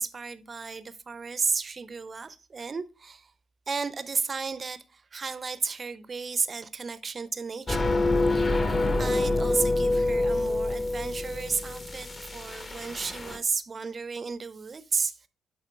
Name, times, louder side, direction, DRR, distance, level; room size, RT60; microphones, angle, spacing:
voice 1, 0.0-3.3 3.7-7.9 9.0-15.1, right 5 dB, 35° right, 0.5 m, -33 dB
sound 1, 7.7-13.4, left 2 dB, 30° left, 0.9 m, -26 dB
8.3 x 3.7 x 3.1 m
cardioid pair, 90°, 0 cm